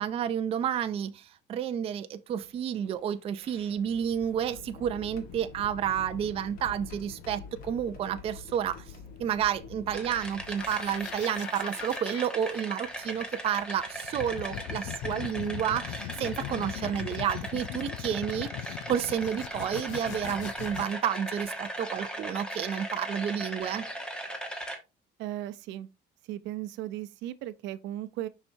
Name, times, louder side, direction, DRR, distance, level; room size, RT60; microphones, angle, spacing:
voice 1, 0.0-8.8 9.2-23.8, right 9 dB, 30° right, 0.4 m, -31 dB
sound 1, 2.3-11.6 12.5-12.6 14.0-14.3 15.0-15.2 16.8-16.9 17.3-17.6, left 6 dB, 50° left, 1.4 m, -47 dB
sound 2, 9.9-24.8, right 1 dB, 5° left, 1.1 m, -39 dB
sound 3, 10.6-20.9, left 14 dB, 80° left, 0.5 m, -40 dB
voice 2, 25.2-25.9 26.2-28.3, right 13 dB, 75° right, 0.6 m, -36 dB
6.9 x 5.8 x 2.7 m
cardioid pair, 175°, 19 cm